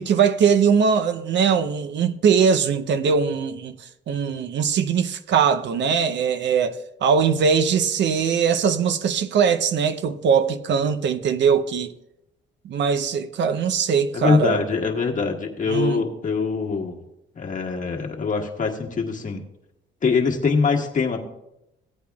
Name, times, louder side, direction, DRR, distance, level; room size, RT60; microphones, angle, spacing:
voice 1, 0.0-11.9 12.6-14.6 15.7-16.0, right 6 dB, 65° right, 0.7 m, -21 dB
voice 2, 14.1-17.0 17.3-19.4 20.0-21.2, left 4 dB, 40° left, 1.5 m, -23 dB
16.0 x 8.5 x 2.3 m
cardioid pair, 90°, 20 cm